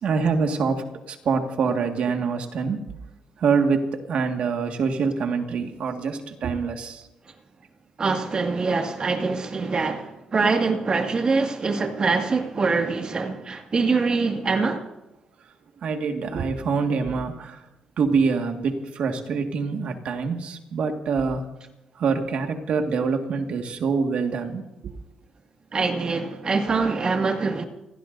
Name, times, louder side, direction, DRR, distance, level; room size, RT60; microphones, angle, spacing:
voice 1, 0.0-2.8 3.4-7.0 15.8-17.6 18.0-21.5 22.0-24.9, right 5 dB, 70° right, 1.8 m, -25 dB
voice 2, 8.0-14.8 25.7-27.7, right 4 dB, 40° right, 2.0 m, -24 dB
29.5 x 16.0 x 2.7 m
cardioid pair, 80°, 2 cm